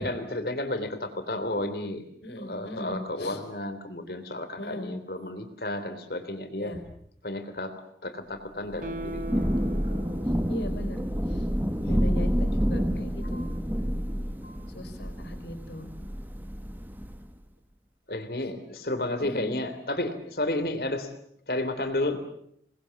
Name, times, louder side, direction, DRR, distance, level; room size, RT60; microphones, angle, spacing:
voice 1, 0.0-2.1 2.4-6.7 7.2-7.7 8.0-9.3 9.9-10.1 13.3-13.5 14.4-14.6 18.1-21.1 21.5-22.2, left 1 dB, 55° left, 8 dB, 3.4 m, -32 dB
voice 2, 2.2-3.4 4.6-4.9 6.5-6.8 10.5-11.0 11.3-11.4 11.7-13.5 14.7-15.9 19.2-19.5, left 1 dB, 75° left, 8 dB, 4.7 m, -38 dB
Thunder / Rain, 8.7-17.3, equal, 10° right, 1.3 m, -29 dB
Guitar, 8.8-12.1 12.4-12.5, right 2 dB, 45° right, 1.0 m, -41 dB
27.5 x 20.5 x 8.4 m, 0.70 s
head